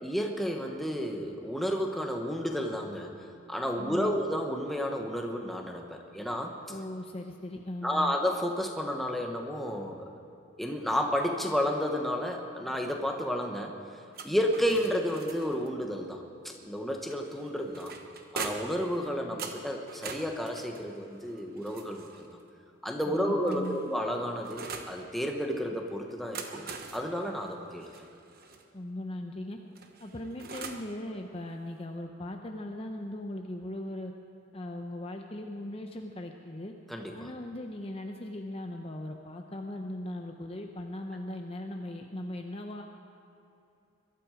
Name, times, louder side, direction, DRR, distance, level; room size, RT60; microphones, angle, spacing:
voice 1, 0.0-6.5 7.8-10.1 10.6-13.7 14.2-17.9 18.3-22.1 22.8-26.7 26.9-27.9 36.9-37.3, equal, ahead, 2 dB, 1.1 m, -31 dB
voice 2, 3.8-4.2 6.7-8.1 23.0-23.8 28.7-29.6 30.0-34.1 34.5-36.7 37.1-42.8, left 1 dB, 30° left, 3 dB, 0.7 m, -39 dB
sound 1, 14.1-15.7 17.1-18.8 19.4-22.3 23.1-25.0 26.1-28.6 29.8-30.9, right 5 dB, 45° right, 1.1 m, -43 dB
22.0 x 12.0 x 5.0 m, 2.7 s
head